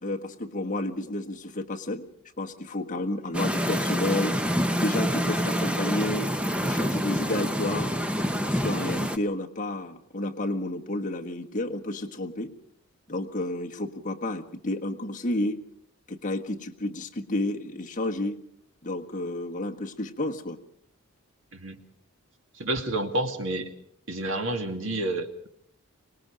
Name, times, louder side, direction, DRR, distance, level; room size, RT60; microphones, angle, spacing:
voice 1, 0.0-2.0 2.4-4.4 4.8-6.3 6.6-7.9 8.4-12.5 13.1-15.6 16.1-18.4 18.8-20.6, left 1 dB, 35° left, 3 dB, 1.5 m, -31 dB
sound 1, 3.3-9.2, equal, 5° right, 0.8 m, -27 dB
voice 2, 22.6-23.7 24.1-25.5, right 1 dB, 60° right, 6 dB, 2.2 m, -29 dB
25.0 x 20.0 x 5.2 m, 0.67 s
head